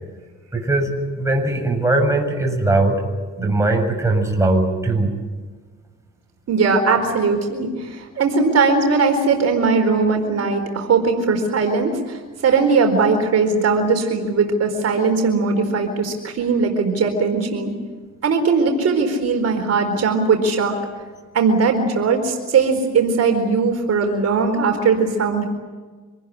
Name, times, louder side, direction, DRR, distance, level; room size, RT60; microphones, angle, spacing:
voice 1, 0.5-0.9 1.2-3.0 3.4-5.1, right 2 dB, 10° right, 2 dB, 7.2 m, -19 dB
voice 2, 6.5-17.7 18.2-20.8 21.3-25.5, right 4 dB, 55° right, 3 dB, 4.5 m, -19 dB
26.5 x 20.0 x 9.7 m, 1.4 s
cardioid pair, 90°, 30 cm